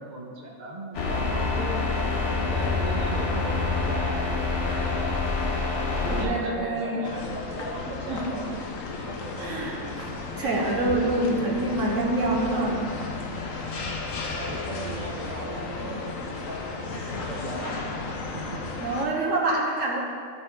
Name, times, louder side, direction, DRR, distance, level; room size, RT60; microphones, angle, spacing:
voice 1, 0.0-1.8 2.5-5.3 5.9-8.6 9.1-9.7 14.3-17.0 17.3-17.9 18.3-18.8, right 2 dB, 35° right, -3 dB, 1.2 m, -37 dB
sound 1, 0.9-6.2, left 3 dB, 65° left, 1.2 m, -26 dB
voice 2, 4.6-5.0 6.1-7.1 8.1-8.2 9.4-12.9 13.6-13.8 15.8-15.9 16.9-17.3 18.8-20.0, right 2 dB, 80° right, -2 dB, 1.5 m, -27 dB
sound 2, 7.0-19.1, left 3 dB, 90° left, 1.3 m, -34 dB
13.5 x 4.5 x 3.7 m, 2.2 s
omnidirectional pair, 1.3 m